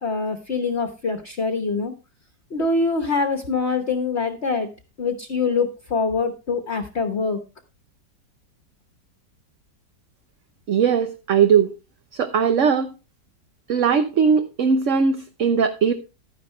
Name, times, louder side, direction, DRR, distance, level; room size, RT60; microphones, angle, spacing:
voice 1, 0.0-1.9 2.5-4.7 5.0-7.4, left 4 dB, 40° left, 7 dB, 1.3 m, -24 dB
voice 2, 10.7-11.7 12.1-12.9 13.7-15.9, right 6 dB, 50° right, 7 dB, 1.0 m, -19 dB
12.0 x 10.0 x 3.2 m, 0.29 s
omnidirectional pair, 1.9 m